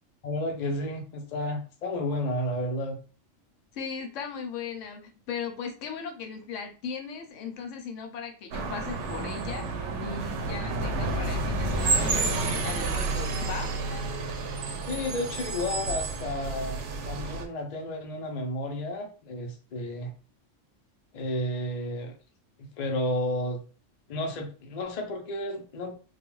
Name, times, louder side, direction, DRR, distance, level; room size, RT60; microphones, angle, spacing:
voice 1, 0.2-3.0 14.9-20.1 21.1-22.1 22.6-23.6 24.1-26.0, left 1 dB, 50° left, 3 dB, 0.5 m, -32 dB
voice 2, 3.7-13.7, left 6 dB, 75° left, 4 dB, 0.9 m, -38 dB
sound 1, 8.5-17.5, right 3 dB, 70° right, 0.8 m, -30 dB
2.3 x 2.3 x 3.0 m, 0.37 s
omnidirectional pair, 1.3 m